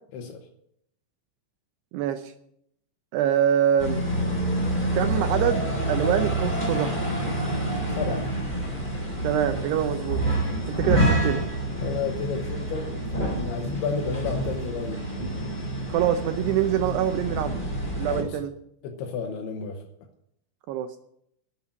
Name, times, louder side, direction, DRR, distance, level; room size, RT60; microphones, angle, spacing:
voice 1, 1.9-2.3 3.1-4.0 4.9-7.0 9.2-10.2 10.7-11.4 15.9-17.6 18.0-18.5 20.7-21.0, right 10 dB, 80° right, 8 dB, 2.5 m, -25 dB
sound 1, 3.8-18.2, right 1 dB, 10° left, 2.9 m, -27 dB
voice 2, 7.9-8.2 11.8-12.9 13.4-15.0 18.1-18.4 18.8-19.8, left 6 dB, 70° left, 3 dB, 2.8 m, -31 dB
12.5 x 7.4 x 9.4 m, 0.74 s
omnidirectional pair, 5.3 m